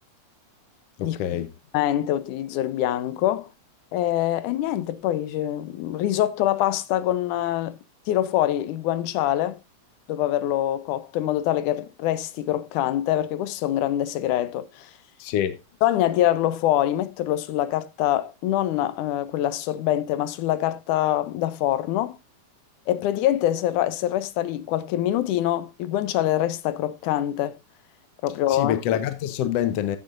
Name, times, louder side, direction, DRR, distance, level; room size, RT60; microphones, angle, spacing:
voice 1, 1.0-1.5 15.2-15.6 28.5-30.0, left 10 dB, 70° left, 1.6 m, -26 dB
voice 2, 1.7-3.5 3.9-7.8 8.1-9.6 10.1-14.9 15.8-22.2 22.9-27.6 28.2-28.8, left 12 dB, 90° left, 2.3 m, -24 dB
15.5 x 7.7 x 2.5 m
omnidirectional pair, 3.4 m